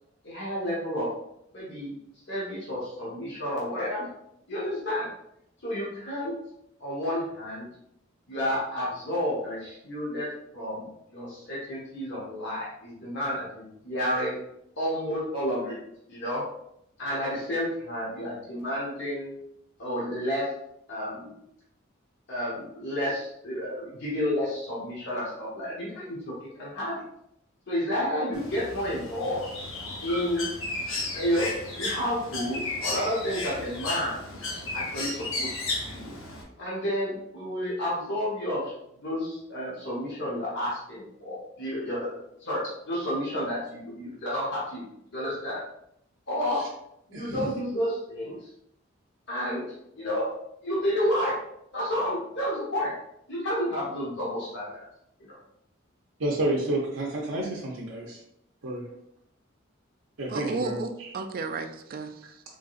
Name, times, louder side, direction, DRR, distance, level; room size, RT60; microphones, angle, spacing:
voice 1, 0.2-1.1 1.5-2.0 2.3-4.1 4.5-5.1 5.6-6.3 6.8-7.7 8.3-10.3 10.5-14.4 14.8-15.8 16.1-16.4 17.0-19.3 19.8-20.5 20.9-21.3 22.3-27.0 27.7-29.4 30.0-30.5 31.1-31.5 31.7-35.6 35.9-36.1 36.6-38.7 39.0-45.6 46.3-46.6 47.1-48.3 49.3-49.6 49.9-50.3 50.6-51.3 51.7-52.9 53.3-54.8 55.3-55.4, equal, 60° left, -6 dB, 1.2 m, -30 dB
Bird, 28.3-36.4, left 2 dB, 90° left, 1.0 m, -34 dB
voice 2, 47.1-47.5 56.2-58.0 58.6-58.8 60.2-61.1, right 1 dB, 85° right, -3 dB, 0.7 m, -29 dB
voice 3, 60.3-62.4, right 4 dB, 45° right, 8 dB, 0.4 m, -33 dB
3.8 x 3.8 x 2.5 m, 0.76 s
head